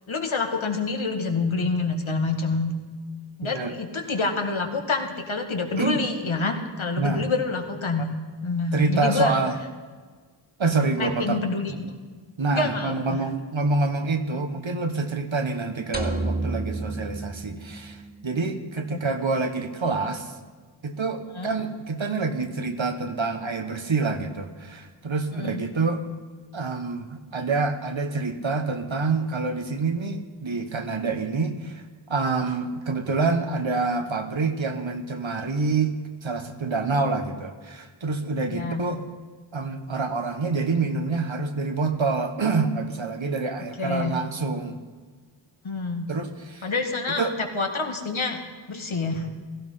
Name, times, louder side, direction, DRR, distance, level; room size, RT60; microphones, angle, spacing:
voice 1, 0.1-2.7 3.4-8.1 8.4-9.3 11.0-11.7 12.5-13.2 14.3-14.4 18.9-19.0 21.4-21.5 25.4-25.7 38.5-38.8 43.8-44.1 45.6-46.1 46.6-48.4 48.7-49.3, left 3 dB, 80° left, 4 dB, 2.1 m, -27 dB
voice 2, 3.4-3.8 5.8-6.0 7.0-7.3 8.7-9.6 10.6-11.4 11.7-11.8 12.4-20.3 20.8-26.1 26.5-35.9 36.2-39.0 39.5-44.8 46.1-46.7 47.2-47.4, right 3 dB, 75° right, 7 dB, 1.5 m, -27 dB
sound 1, 15.9-18.2, right 2 dB, 20° right, 1.8 m, -30 dB
16.5 x 15.0 x 5.7 m, 1.5 s
wide cardioid pair, 55°, 47 cm